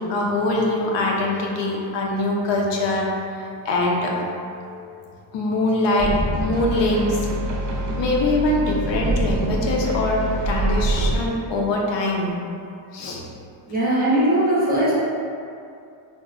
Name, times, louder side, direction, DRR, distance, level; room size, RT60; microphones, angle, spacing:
voice 1, 0.1-6.1 6.4-7.2 8.0-12.4 12.9-13.2, left 2 dB, 70° left, -1 dB, 0.5 m, -23 dB
sound 1, 6.0-11.2, right 1 dB, 65° right, 0.6 m, -25 dB
voice 2, 13.7-14.9, right 1 dB, 20° right, -8 dB, 0.5 m, -19 dB
3.8 x 2.1 x 2.4 m, 2.4 s
wide cardioid pair, 180°, 45 cm